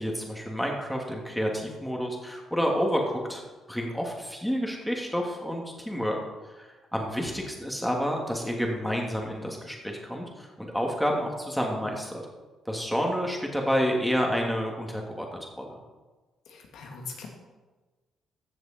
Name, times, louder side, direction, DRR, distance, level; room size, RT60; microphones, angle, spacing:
voice 1, 0.0-3.4 3.7-6.2 6.5-12.2 12.7-15.8, equal, ahead, 0 dB, 2.6 m, -29 dB
voice 2, 16.5-17.3, left 5 dB, 80° left, 1 dB, 2.2 m, -41 dB
15.0 x 6.7 x 4.5 m, 1.3 s
cardioid pair, 90°, 0 cm